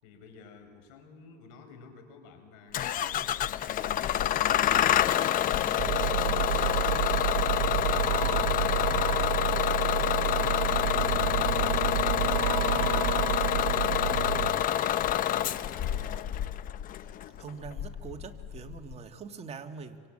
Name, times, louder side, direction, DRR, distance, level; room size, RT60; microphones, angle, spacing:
voice 1, 0.0-4.9 12.5-13.3 13.9-14.5 15.4-16.4, left 5 dB, 85° left, 7 dB, 5.1 m, -51 dB
Bus / Engine starting, 2.7-18.9, left 11 dB, 45° left, 0.8 m, -27 dB
sound 1, 5.8-14.5, right 15 dB, 65° right, 1.4 m, -30 dB
voice 2, 17.4-20.0, right 5 dB, 35° right, 5 dB, 1.9 m, -43 dB
28.0 x 24.0 x 8.8 m, 2.1 s
supercardioid pair, 120°, 20 cm